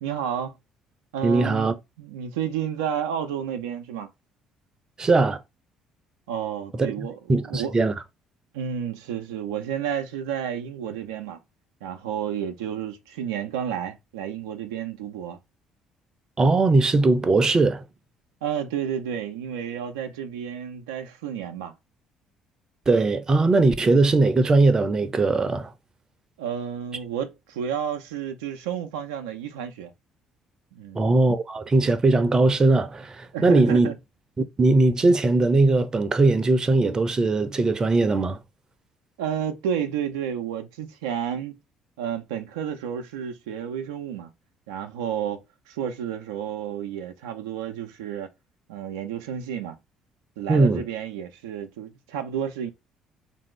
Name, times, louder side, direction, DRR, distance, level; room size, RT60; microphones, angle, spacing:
voice 1, 0.0-0.6 1.1-4.1 6.3-7.7 8.5-11.4 11.8-15.4 18.4-21.7 26.4-29.9 30.7-31.0 33.3-33.9 39.2-41.6 42.0-44.3 44.7-48.3 48.7-49.8 50.4-52.7, right 8 dB, 80° right, 0.5 m, -31 dB
voice 2, 1.2-1.7 5.0-5.4 6.7-7.9 16.4-17.8 22.9-25.7 30.9-33.9 34.6-38.4 50.5-50.8, right 3 dB, 30° right, 0.6 m, -20 dB
3.6 x 2.7 x 3.1 m
hypercardioid pair, 55°, 2 cm